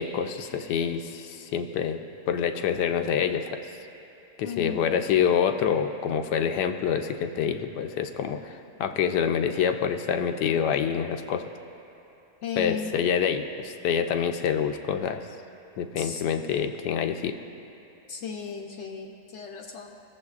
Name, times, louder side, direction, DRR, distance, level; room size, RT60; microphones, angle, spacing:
voice 1, 0.0-3.6 4.4-11.5 12.6-15.2 15.8-17.4, left 7 dB, 85° left, 6 dB, 1.2 m, -26 dB
voice 2, 4.4-4.8 12.4-12.9 16.0-16.2 18.1-20.0, left 6 dB, 65° left, 2 dB, 0.7 m, -35 dB
19.0 x 7.1 x 2.4 m, 3.0 s
omnidirectional pair, 1.8 m